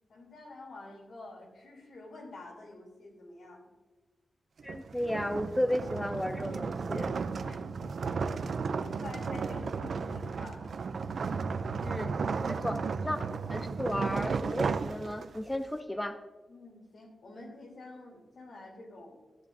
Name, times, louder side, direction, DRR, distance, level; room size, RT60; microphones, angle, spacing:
voice 1, 0.1-3.7 7.4-8.0 8.7-10.6 16.5-19.2, left 2 dB, 80° left, 0 dB, 3.2 m, -48 dB
voice 2, 4.6-7.1 11.8-13.2 13.5-16.2, left 1 dB, 10° left, 8 dB, 0.4 m, -34 dB
sound 1, 4.6-15.6, right 5 dB, 65° right, 0.4 m, -34 dB
13.0 x 10.0 x 2.6 m, 1.2 s
wide cardioid pair, 150°, 0 cm